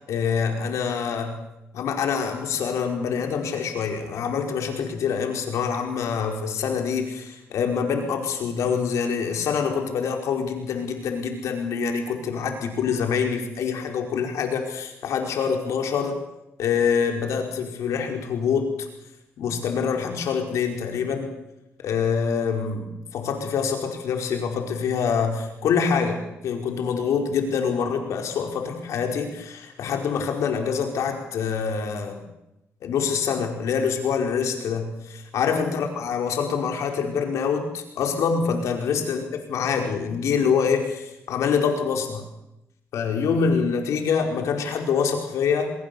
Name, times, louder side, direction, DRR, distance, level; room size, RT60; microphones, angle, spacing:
voice 1, 0.1-1.4 1.7-16.2 16.6-18.9 19.4-21.3 21.8-32.2 32.8-42.2 42.9-45.7, left 6 dB, 85° left, 4 dB, 4.9 m, -25 dB
25.5 x 22.0 x 7.0 m, 0.88 s
cardioid pair, 90°, 5 cm